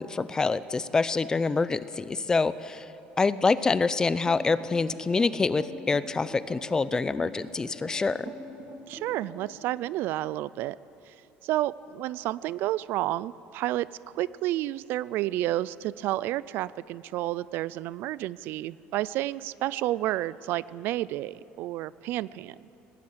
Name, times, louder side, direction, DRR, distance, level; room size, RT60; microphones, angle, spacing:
voice 1, 0.0-2.9 3.2-8.3, left 4 dB, 20° left, 15 dB, 0.6 m, -26 dB
sound 1, 4.3-9.5, right 2 dB, 45° right, 3.7 m, -43 dB
voice 2, 8.9-10.8 11.1-11.2 11.4-13.9 14.1-22.6, right 15 dB, 65° right, 19 dB, 0.4 m, -30 dB
19.5 x 18.0 x 8.0 m, 2.9 s
cardioid pair, 135°, 4 cm